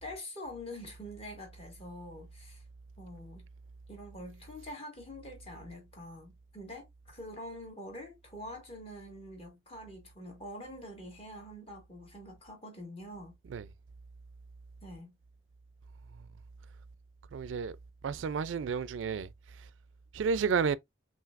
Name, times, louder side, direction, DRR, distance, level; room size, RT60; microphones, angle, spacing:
voice 1, 0.0-2.6 3.0-3.5 3.9-13.3 14.8-15.1, left 1 dB, 30° left, 1.6 m, -45 dB
voice 2, 17.3-17.8 18.0-19.3 20.1-20.8, right 6 dB, 85° right, 0.4 m, -31 dB
5.7 x 2.7 x 2.4 m
head